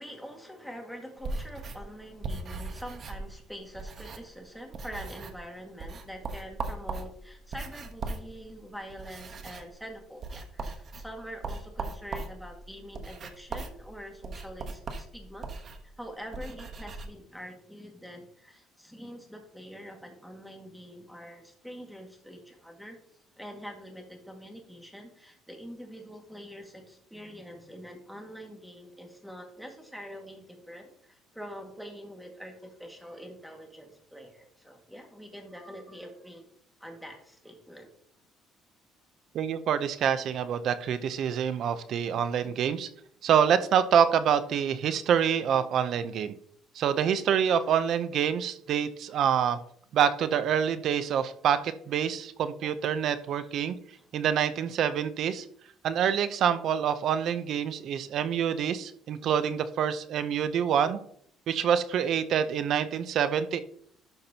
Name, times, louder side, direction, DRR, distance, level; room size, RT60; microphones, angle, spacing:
voice 1, 0.0-15.5 15.8-23.0 23.4-36.5 36.8-37.9 53.9-54.1, equal, ahead, 3 dB, 1.8 m, -45 dB
sound 1, 1.2-4.4 4.7-5.5 5.8-17.1, right 3 dB, 45° right, 1.1 m, -39 dB
voice 2, 39.3-42.9 43.2-46.3 46.7-49.6 49.9-53.8 54.1-55.5 55.8-61.0 61.5-63.6, right 8 dB, 60° right, 13 dB, 0.6 m, -26 dB
12.0 x 5.9 x 2.8 m, 0.64 s
cardioid pair, 115°, 0 cm